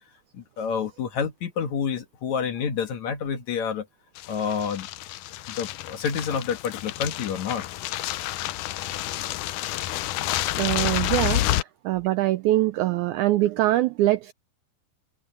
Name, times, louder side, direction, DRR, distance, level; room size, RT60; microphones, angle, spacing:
voice 1, 0.3-3.9 4.3-4.9 5.5-7.6, left 6 dB, 55° left, 2.7 m, -28 dB
sound 1, 4.2-11.6, left 14 dB, 75° left, 2.0 m, -29 dB
voice 2, 10.6-11.5 11.8-14.3, right 15 dB, 90° right, 1.7 m, -23 dB
open air
omnidirectional pair, 4.1 m